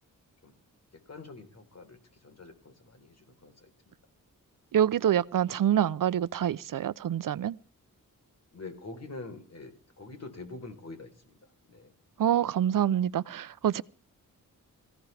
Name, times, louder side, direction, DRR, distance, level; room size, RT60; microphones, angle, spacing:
voice 1, 1.1-3.9 8.5-11.9, left 3 dB, 50° left, 4.0 m, -46 dB
voice 2, 4.7-7.6 12.2-13.8, right 10 dB, 75° right, 0.7 m, -26 dB
23.0 x 16.0 x 3.4 m
wide cardioid pair, 105°, 33 cm